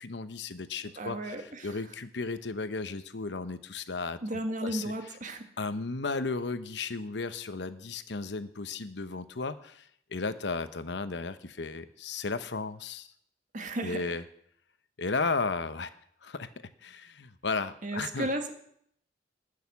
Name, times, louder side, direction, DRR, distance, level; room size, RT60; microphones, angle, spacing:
voice 1, 0.0-4.9 5.6-13.1 13.8-14.2 15.0-15.9 16.2-18.3, left 4 dB, 70° left, 12 dB, 0.9 m, -34 dB
voice 2, 1.0-1.8 4.2-5.5 13.5-14.0 17.8-18.5, right 1 dB, 45° right, 6 dB, 1.5 m, -34 dB
12.5 x 6.7 x 9.5 m, 0.67 s
head